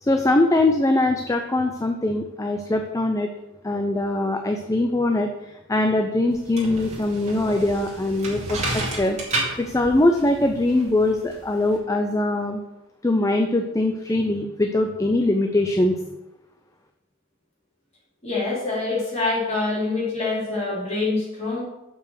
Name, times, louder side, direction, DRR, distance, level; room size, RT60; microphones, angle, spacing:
voice 1, 0.0-3.3 3.6-5.3 5.7-9.2 9.6-12.6 13.0-16.0, left 2 dB, 15° left, 5 dB, 0.4 m, -22 dB
sound 1, 6.3-11.8, right 2 dB, 30° right, 2.2 m, -32 dB
voice 2, 18.2-21.6, left 3 dB, 30° left, -6 dB, 3.5 m, -25 dB
7.0 x 5.6 x 6.3 m, 0.98 s
head